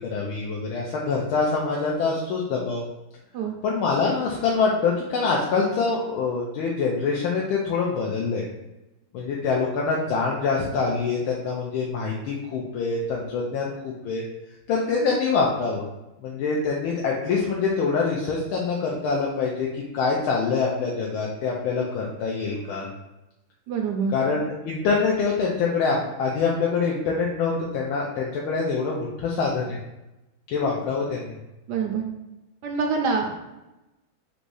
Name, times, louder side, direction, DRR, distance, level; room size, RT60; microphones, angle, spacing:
voice 1, 0.0-2.8 3.6-8.5 9.1-14.2 14.7-15.8 16.2-22.9 24.1-24.4 24.6-29.8 30.5-31.4, left 4 dB, 90° left, -3 dB, 1.5 m, -25 dB
voice 2, 23.7-24.1 31.7-32.0 32.6-33.4, right 5 dB, 75° right, 2 dB, 1.0 m, -25 dB
4.1 x 2.6 x 4.7 m, 0.99 s
omnidirectional pair, 2.2 m